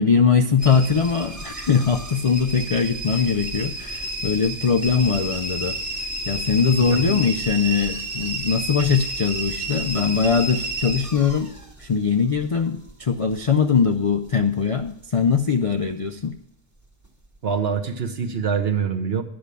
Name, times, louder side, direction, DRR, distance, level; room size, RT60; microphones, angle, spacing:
voice 1, 0.0-5.8 6.3-11.5 11.8-16.4, left 6 dB, 50° left, 7 dB, 0.4 m, -21 dB
sound 1, 0.6-15.5 15.7-16.4 16.9-17.4 17.8-17.9, right 2 dB, 15° right, 1.1 m, -32 dB
voice 2, 6.8-7.2 17.4-19.2, right 6 dB, 60° right, 6 dB, 1.2 m, -25 dB
10.0 x 6.2 x 6.8 m, 0.80 s
omnidirectional pair, 1.2 m